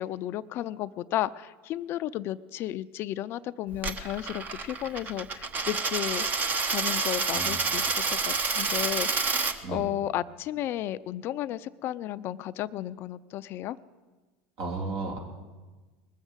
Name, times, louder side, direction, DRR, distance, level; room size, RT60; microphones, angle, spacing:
voice 1, 0.0-13.8, left 13 dB, 50° left, 14 dB, 0.5 m, -33 dB
Coin (dropping), 3.7-9.6, right 4 dB, 30° right, 1.1 m, -28 dB
voice 2, 7.3-7.8 9.6-9.8 14.6-15.2, right 3 dB, 65° right, 1 dB, 3.4 m, -34 dB
20.0 x 7.3 x 8.1 m, 1.3 s
supercardioid pair, 100°, 5 cm